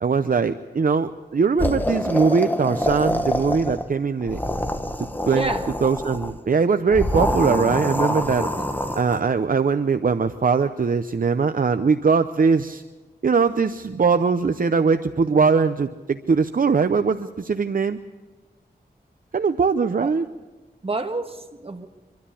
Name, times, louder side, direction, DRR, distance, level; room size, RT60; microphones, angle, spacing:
voice 1, 0.0-4.4 5.3-5.5 5.8-8.5 9.0-12.8 13.2-18.0 19.3-20.2, right 5 dB, 55° right, 10 dB, 0.7 m, -21 dB
sound 1, 1.6-3.9 4.2-6.3 6.9-9.2, left 1 dB, 10° left, 1.4 m, -26 dB
voice 2, 5.3-5.7 8.5-8.7 20.0-20.1 20.8-21.8, right 2 dB, 35° right, 4 dB, 1.8 m, -28 dB
25.0 x 13.0 x 8.6 m, 1.2 s
wide cardioid pair, 80°, 17 cm